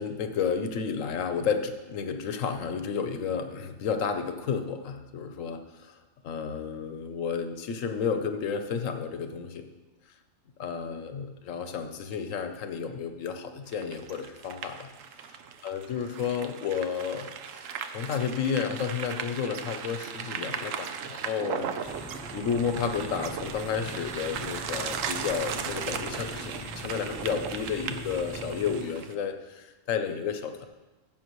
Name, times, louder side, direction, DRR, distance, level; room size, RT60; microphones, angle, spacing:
voice 1, 0.0-5.6 6.2-9.7 10.6-14.9 15.6-17.3 17.9-21.9 22.3-30.7, left 6 dB, 90° left, 7 dB, 1.2 m, -31 dB
sound 1, 13.7-29.1, right 7 dB, 85° right, 1.0 m, -37 dB
sound 2, 21.8-28.8, left 1 dB, 15° left, 0.9 m, -42 dB
14.5 x 7.2 x 3.1 m, 1.1 s
omnidirectional pair, 1.3 m